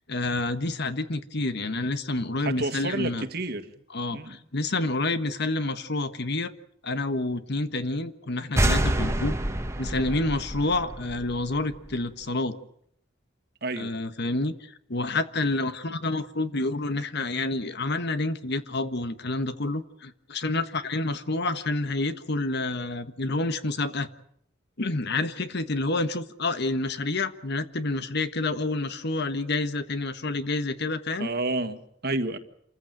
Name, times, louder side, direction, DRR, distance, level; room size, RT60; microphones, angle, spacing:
voice 1, 0.1-3.2 3.9-6.5 6.8-9.4 9.8-12.6 13.8-24.1 24.8-31.3, left 2 dB, 60° left, 1.4 m, -28 dB
voice 2, 2.4-3.7 4.1-4.4 13.6-13.9 31.2-32.4, right 2 dB, 55° right, 1.8 m, -30 dB
sound 1, 8.6-12.0, right 1 dB, 15° right, 1.4 m, -27 dB
27.5 x 15.0 x 9.1 m
head